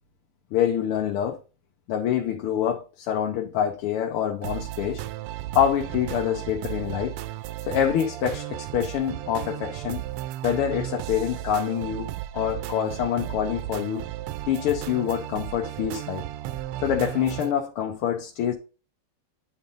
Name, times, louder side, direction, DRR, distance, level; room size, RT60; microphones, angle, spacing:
voice 1, 0.5-1.4 1.9-5.0 5.5-7.1 7.7-10.0 10.4-14.0 14.5-16.2 16.8-18.5, left 9 dB, 80° left, 1.7 m, -26 dB
sound 1, 4.4-17.5, right 14 dB, 85° right, 1.5 m, -34 dB
9.9 x 4.1 x 3.9 m
omnidirectional pair, 2.4 m